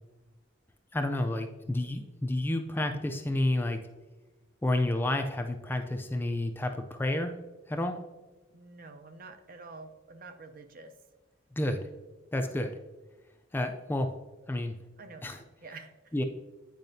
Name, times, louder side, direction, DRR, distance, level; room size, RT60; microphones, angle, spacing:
voice 1, 0.9-3.9 4.6-7.3 7.7-8.0 11.6-11.9 12.3-12.7 13.5-14.1 14.5-14.8 15.2-15.4 16.1-16.2, left 1 dB, 10° left, 5 dB, 0.3 m, -30 dB
voice 2, 8.5-10.9 15.0-16.1, right 3 dB, 45° right, 7 dB, 0.5 m, -48 dB
9.1 x 4.8 x 2.7 m, 1.2 s
head